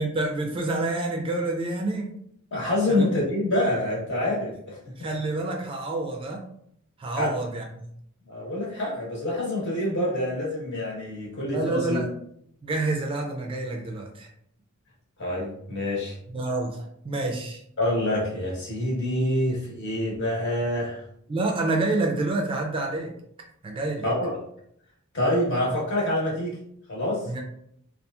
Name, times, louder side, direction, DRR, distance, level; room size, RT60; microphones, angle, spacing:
voice 1, 0.0-2.1 2.9-3.1 5.0-6.4 7.0-7.9 11.5-12.1 12.6-14.3 16.3-16.8 17.0-17.6 21.3-23.1 23.6-24.0 27.3-27.4, right 2 dB, 25° right, 2 dB, 0.3 m, -28 dB
voice 2, 2.5-4.8 7.2-7.3 8.3-12.0 15.2-16.2 17.8-21.0 24.0-24.4 25.1-26.5 26.9-27.2, left 1 dB, 55° left, -4 dB, 1.1 m, -26 dB
2.8 x 2.4 x 2.3 m, 0.69 s
head